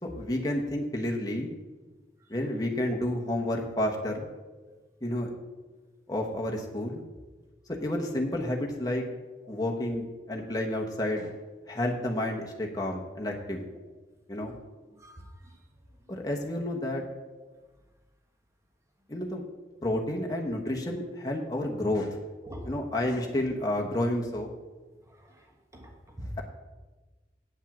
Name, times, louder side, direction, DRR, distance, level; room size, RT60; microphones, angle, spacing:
voice 1, 0.0-1.5 2.3-4.3 5.0-5.3 6.1-7.0 7.7-9.0 9.5-11.3 11.7-13.6 14.3-14.5 16.1-17.0 19.1-19.4 19.8-22.2 22.6-24.5, left 1 dB, 20° left, 0 dB, 1.2 m, -30 dB
voice 2, 14.9-15.6 17.5-17.6 22.4-22.7 25.1-25.5 25.7-26.3, equal, 15° right, 0 dB, 1.4 m, -45 dB
8.9 x 5.5 x 7.2 m, 1.2 s
head